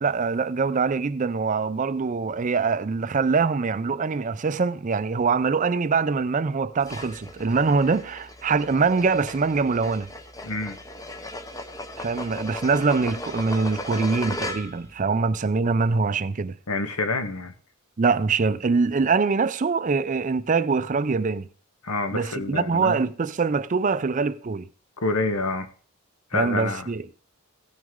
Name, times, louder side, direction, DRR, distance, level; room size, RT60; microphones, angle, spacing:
voice 1, 0.0-10.1 12.0-16.5 18.0-21.5 22.1-24.7 26.3-27.0, right 4 dB, 35° right, 0.4 m, -23 dB
sound 1, 6.8-14.9, left 2 dB, 15° left, 0.7 m, -37 dB
voice 2, 10.4-10.8 16.7-17.5 21.8-23.0 25.0-25.7 26.3-26.9, left 3 dB, 85° left, 1.2 m, -27 dB
16.5 x 6.2 x 3.7 m
head